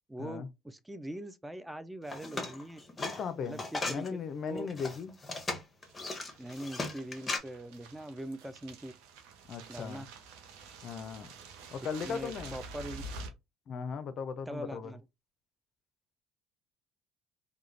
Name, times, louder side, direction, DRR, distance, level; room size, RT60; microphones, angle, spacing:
voice 1, 0.1-2.8 3.4-4.7 6.4-8.9 9.7-10.1 11.8-13.0 14.5-15.0, right 1 dB, 10° right, 0.3 m, -42 dB
sound 1, 2.0-4.1 4.6-7.4, left 3 dB, 25° left, 0.8 m, -37 dB
voice 2, 3.0-5.1 9.5-10.1 10.8-11.3 11.7-12.6 13.7-14.9, left 6 dB, 55° left, 0.4 m, -38 dB
sound 2, 5.8-13.3, right 2 dB, 80° right, 0.5 m, -48 dB
2.3 x 2.1 x 3.1 m
supercardioid pair, 75°, 0 cm